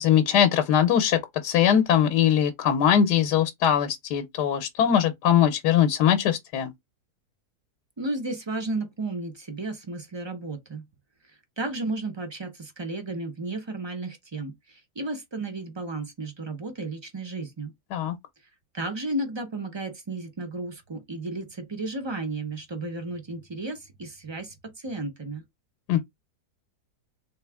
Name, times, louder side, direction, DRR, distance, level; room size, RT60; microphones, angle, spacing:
voice 1, 0.0-6.7 17.9-18.1 25.9-26.0, left 9 dB, 85° left, 1.3 m, -21 dB
voice 2, 8.0-10.8 11.2-17.7 18.7-25.4, right 2 dB, 40° right, 0.4 m, -33 dB
3.9 x 2.9 x 3.3 m
omnidirectional pair, 1.7 m